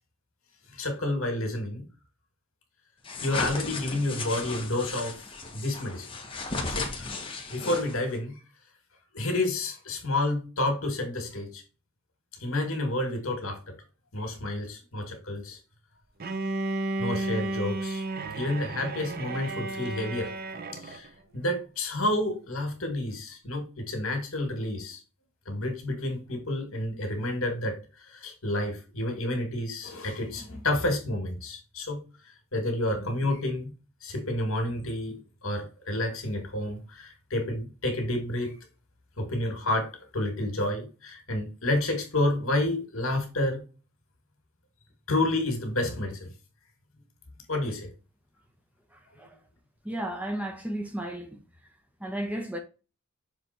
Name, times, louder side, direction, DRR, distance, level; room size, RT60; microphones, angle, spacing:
voice 1, 0.7-1.9 3.2-5.2 5.5-6.1 6.7-7.1 7.5-8.4 9.1-11.6 12.4-13.8 14.1-15.6 17.0-18.0 18.3-20.3 20.8-21.1 21.3-25.0 25.5-27.8 28.1-32.0 32.5-33.7 34.0-38.5 39.2-43.6 45.1-46.3 47.5-47.9, left 1 dB, 75° left, 2.4 m, -30 dB
sound 1, 3.0-8.2, left 3 dB, 25° left, 1.3 m, -35 dB
Bowed string instrument, 16.2-21.1, right 2 dB, 45° right, 0.7 m, -33 dB
voice 2, 49.8-51.4 52.0-52.6, right 1 dB, 5° right, 0.8 m, -33 dB
6.8 x 3.4 x 4.4 m
head